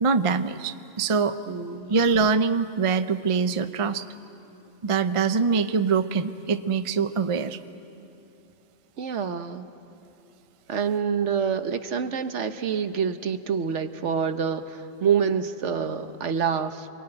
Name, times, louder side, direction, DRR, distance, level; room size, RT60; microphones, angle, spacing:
voice 1, 0.0-1.4 1.9-4.1 4.8-7.6, right 5 dB, 35° right, 10 dB, 0.6 m, -24 dB
voice 2, 1.5-1.9 9.0-9.7 10.7-16.9, right 7 dB, 65° right, 10 dB, 1.3 m, -27 dB
28.0 x 23.0 x 8.9 m, 2.8 s
omnidirectional pair, 1.4 m